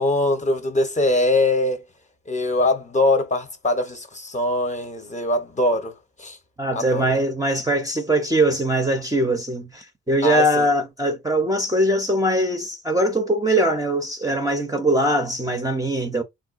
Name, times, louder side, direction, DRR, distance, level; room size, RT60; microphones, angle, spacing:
voice 1, 0.0-1.8 2.3-5.9 6.2-6.4 6.7-7.1 10.2-10.7, left 2 dB, 25° left, 0.7 m, -22 dB
voice 2, 6.6-16.2, right 1 dB, 10° right, 0.5 m, -21 dB
3.6 x 2.2 x 2.4 m
cardioid pair, 90°, 30 cm